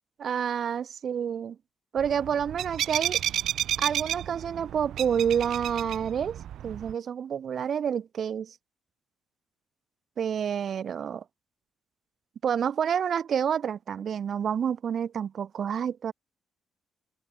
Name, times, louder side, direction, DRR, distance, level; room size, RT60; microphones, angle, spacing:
voice 1, 0.2-1.6 1.9-3.2 3.8-8.5 10.2-11.2 12.4-16.1, right 8 dB, 55° right, 5.0 m, -29 dB
sound 1, 2.0-6.9, right 11 dB, 75° right, 4.9 m, -32 dB
open air
cardioid pair, 90°, 0 cm